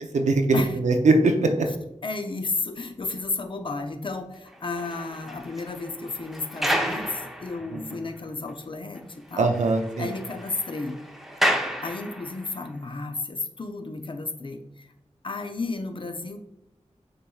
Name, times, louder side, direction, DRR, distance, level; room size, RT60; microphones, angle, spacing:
voice 1, 0.1-1.7 7.7-7.8 9.4-10.1, right 3 dB, 80° right, 5 dB, 0.5 m, -21 dB
voice 2, 2.0-9.6 10.0-11.0 11.8-14.9 15.2-16.4, left 3 dB, 45° left, 6 dB, 0.5 m, -33 dB
sound 1, 4.5-8.0 8.5-8.6 8.9-9.0 9.3-12.6, equal, ahead, 0.6 m, -31 dB
6.5 x 3.0 x 2.3 m, 0.84 s
cardioid pair, 50°, 12 cm